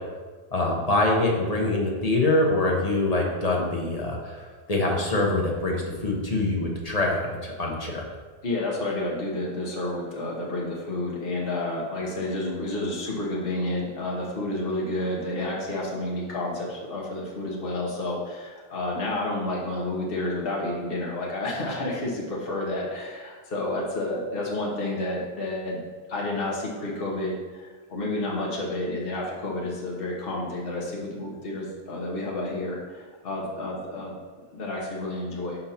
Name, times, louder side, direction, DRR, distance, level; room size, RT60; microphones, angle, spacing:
voice 1, 0.5-8.1, left 2 dB, 35° left, -1 dB, 1.0 m, -24 dB
voice 2, 8.4-34.2 34.5-35.6, left 2 dB, 50° left, -3 dB, 1.4 m, -30 dB
5.7 x 5.2 x 4.3 m, 1.4 s
omnidirectional pair, 1.2 m